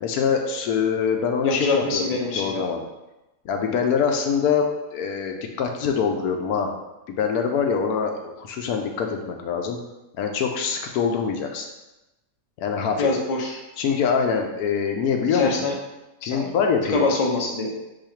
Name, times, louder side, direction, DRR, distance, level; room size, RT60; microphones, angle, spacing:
voice 1, 0.0-2.8 3.4-4.7 4.9-6.7 7.1-9.8 10.2-11.7 12.6-13.1 13.8-15.5 16.2-17.1, left 6 dB, 85° left, 3 dB, 1.1 m, -24 dB
voice 2, 1.4-2.6 13.0-13.6 15.3-15.8 16.2-16.5 16.9-17.7, left 3 dB, 40° left, -1 dB, 0.5 m, -24 dB
4.8 x 2.5 x 4.4 m, 0.98 s
omnidirectional pair, 1.6 m